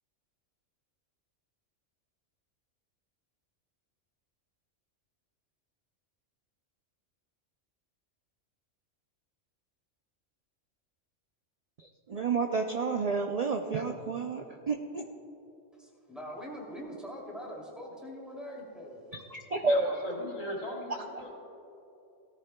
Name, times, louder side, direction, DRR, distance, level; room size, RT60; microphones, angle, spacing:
voice 1, 11.8-15.0 19.3-19.9, right 3 dB, 60° right, 3 dB, 0.4 m, -30 dB
voice 2, 15.8-19.0, equal, ahead, -3 dB, 2.6 m, -43 dB
voice 3, 19.6-21.3, left 1 dB, 85° left, -6 dB, 2.9 m, -38 dB
17.5 x 13.5 x 2.2 m, 2.9 s
omnidirectional pair, 1.3 m